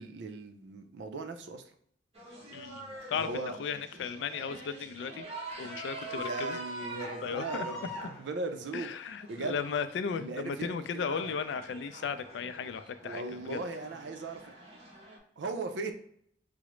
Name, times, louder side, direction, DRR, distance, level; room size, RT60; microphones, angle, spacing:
voice 1, 0.0-1.6 3.1-3.5 6.0-8.9 9.3-9.6 10.1-11.3 13.0-14.5 15.4-15.9, right 3 dB, 75° right, 7 dB, 0.5 m, -38 dB
sound 1, 2.1-9.8 10.6-15.2, right 1 dB, 35° right, 1.0 m, -44 dB
voice 2, 2.5-5.2 5.6-6.6 6.9-7.9 8.7-13.6, left 6 dB, 80° left, 11 dB, 0.3 m, -36 dB
4.8 x 2.0 x 3.0 m, 0.66 s
head